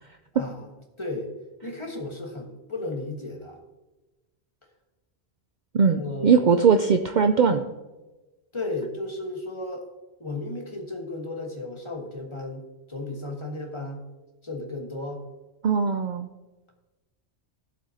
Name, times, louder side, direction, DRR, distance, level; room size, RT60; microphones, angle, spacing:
voice 1, 0.3-0.7 1.0-1.3 1.6-3.6 5.9-6.6 8.5-9.9 10.2-14.0 14.4-15.2, left 2 dB, 25° left, 1 dB, 1.4 m, -34 dB
voice 2, 5.7-7.6 15.6-16.3, right 6 dB, 55° right, 7 dB, 0.6 m, -20 dB
16.5 x 7.6 x 2.8 m, 1.1 s
omnidirectional pair, 1.1 m